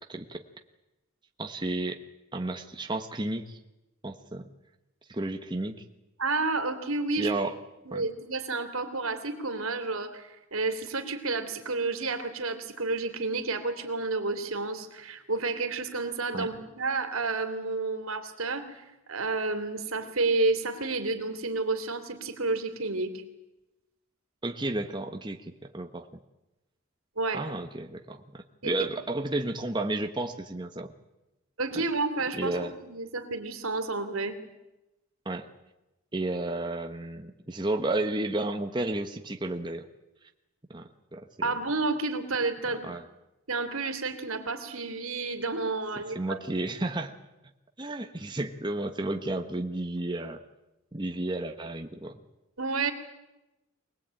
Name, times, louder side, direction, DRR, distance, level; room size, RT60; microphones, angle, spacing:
voice 1, 0.1-0.4 1.4-2.0 2.3-3.6 4.0-4.5 5.1-5.8 7.2-7.5 7.9-8.0 16.3-16.5 24.4-26.1 27.3-30.9 32.3-32.7 35.2-35.5 36.1-39.9 40.7-41.5 42.8-43.0 46.1-47.1 47.8-50.4 50.9-52.2, right 2 dB, 20° right, 5 dB, 1.2 m, -32 dB
voice 2, 6.2-7.3 7.9-23.1 27.2-27.4 28.6-28.9 31.6-34.4 41.4-43.0 43.5-46.4 52.6-52.9, right 3 dB, 90° right, 7 dB, 2.9 m, -30 dB
24.5 x 19.5 x 8.9 m, 1.0 s
head